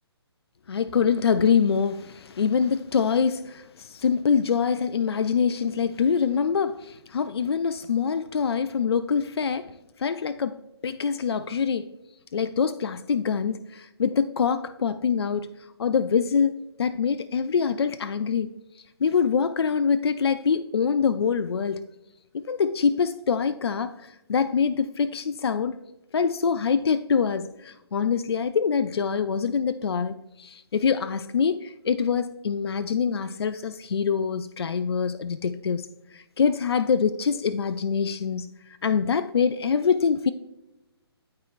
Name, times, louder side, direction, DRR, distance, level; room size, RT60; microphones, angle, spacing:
voice 1, 0.7-10.6 10.8-11.9 12.3-15.5 15.8-18.5 19.0-21.8 22.3-25.8 26.1-35.9 36.1-38.5 38.8-40.3, left 6 dB, 70° left, 0.4 m, -25 dB
12.5 x 4.3 x 2.4 m
figure-of-eight pair, 135°, 14 cm